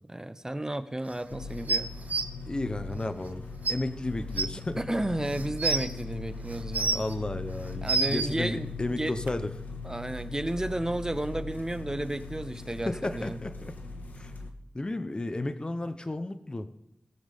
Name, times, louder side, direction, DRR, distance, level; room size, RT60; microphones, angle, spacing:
voice 1, 0.1-1.9 4.5-7.0 7.8-9.1 9.8-13.4, right 1 dB, 20° right, 11 dB, 0.8 m, -32 dB
sound 1, 1.3-14.5, left 3 dB, 75° left, 1.3 m, -40 dB
sound 2, 1.7-2.2 3.3-3.4 3.6-3.7 4.4-4.5 5.2-5.9 6.5-7.1 7.6-8.3 9.3-9.4, right 4 dB, 60° right, 0.9 m, -27 dB
voice 2, 2.5-3.4 3.7-4.8 6.9-9.5 12.9-13.7 14.2-14.3 14.7-16.7, left 2 dB, 30° left, 10 dB, 0.8 m, -33 dB
20.0 x 7.2 x 3.5 m, 0.87 s
cardioid pair, 55°, 3 cm